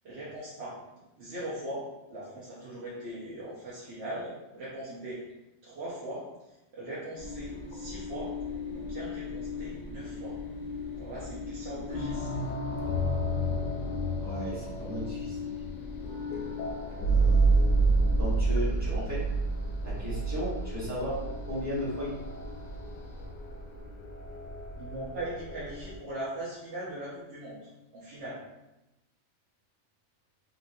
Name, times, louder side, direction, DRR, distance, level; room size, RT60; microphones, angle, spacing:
voice 1, 0.0-0.8 1.2-5.2 5.6-6.2 6.7-8.3 8.7-10.4 11.0-12.4 24.8-28.4, right 1 dB, 60° right, -8 dB, 0.9 m, -40 dB
sound 1, 7.2-26.0, right 2 dB, 70° left, 0.8 m, -31 dB
voice 2, 14.2-15.4 17.0-17.8 18.2-19.2 19.8-21.2 21.4-22.1, equal, 15° right, -9 dB, 1.0 m, -35 dB
2.8 x 2.7 x 2.5 m, 0.97 s
omnidirectional pair, 1.4 m